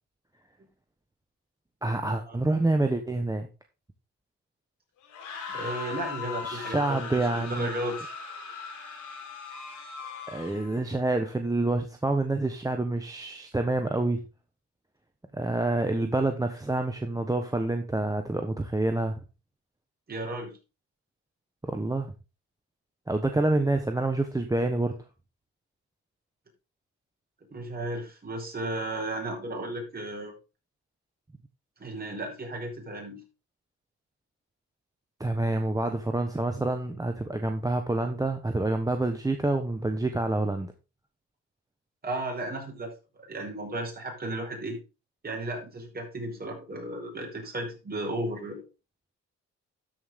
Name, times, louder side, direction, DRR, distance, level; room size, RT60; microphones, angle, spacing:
voice 1, 1.8-3.5 6.4-7.7 10.3-14.2 15.3-19.2 21.6-22.1 23.1-25.0 35.2-40.7, right 2 dB, 10° right, 5 dB, 1.2 m, -27 dB
sound 1, 5.0-10.8, left 5 dB, 85° left, 4.3 m, -39 dB
voice 2, 5.5-8.1 20.1-20.5 27.5-30.3 31.8-33.2 42.0-44.8 45.2-48.6, right 1 dB, 30° right, 1 dB, 5.2 m, -34 dB
13.0 x 5.5 x 3.7 m, 0.29 s
cardioid pair, 90°, 30 cm